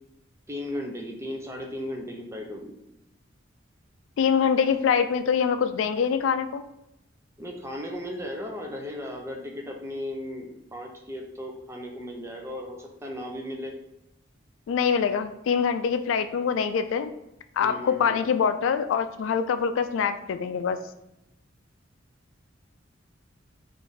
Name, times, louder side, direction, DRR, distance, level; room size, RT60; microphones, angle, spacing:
voice 1, 0.5-2.8 7.4-13.7 17.6-18.2, left 1 dB, 15° right, 2 dB, 0.5 m, -36 dB
voice 2, 4.2-6.6 14.7-17.1 17.6-20.8, left 6 dB, 80° left, 11 dB, 0.3 m, -24 dB
3.3 x 2.6 x 3.8 m, 0.84 s
head